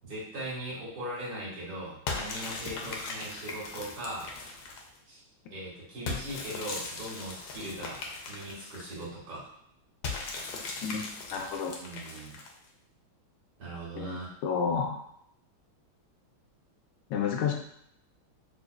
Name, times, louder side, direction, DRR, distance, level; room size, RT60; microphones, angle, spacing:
voice 1, 0.0-4.3 5.1-5.2 5.5-9.5 11.8-12.4 13.6-14.3, right 1 dB, 85° right, -8 dB, 2.5 m, -39 dB
sound 1, 2.1-5.0 6.1-9.0 10.0-12.7, left 4 dB, 70° left, 1.0 m, -38 dB
voice 2, 11.3-11.7 14.0-14.2 14.4-15.0 17.1-17.5, left 6 dB, 85° left, 1 dB, 1.5 m, -30 dB
5.2 x 2.2 x 2.3 m, 0.71 s
omnidirectional pair, 2.3 m